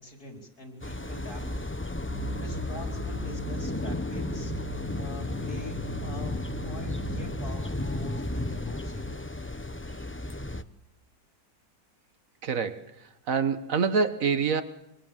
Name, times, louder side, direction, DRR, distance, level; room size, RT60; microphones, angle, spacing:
voice 1, 0.0-1.7 2.2-5.8 6.0-6.4 6.6-9.3, left 1 dB, 70° left, 2 dB, 5.0 m, -44 dB
sound 1, 0.8-10.6, left 1 dB, 10° left, 0.6 m, -34 dB
sound 2, 2.1-7.3, right 1 dB, 20° right, 1.9 m, -40 dB
voice 2, 12.4-14.6, right 5 dB, 55° right, 10 dB, 1.8 m, -26 dB
26.5 x 24.5 x 7.6 m, 0.86 s
omnidirectional pair, 1.7 m